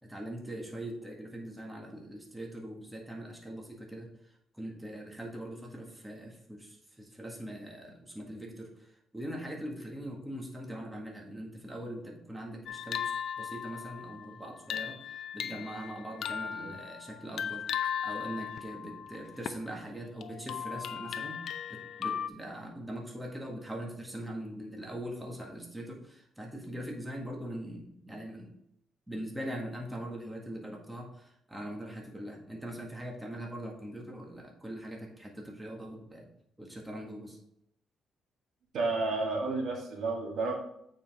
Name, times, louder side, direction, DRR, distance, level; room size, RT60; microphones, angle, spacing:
voice 1, 0.0-4.1 4.5-17.6 18.0-21.4 21.7-28.5 29.1-36.3 36.6-37.4, right 1 dB, 10° right, -1 dB, 1.8 m, -42 dB
sound 1, 12.7-19.7 20.2-22.3, left 8 dB, 70° left, 0.6 m, -37 dB
voice 2, 38.7-40.6, right 3 dB, 70° right, 0 dB, 2.1 m, -31 dB
8.5 x 5.0 x 3.6 m, 0.73 s
cardioid pair, 90°, 0 cm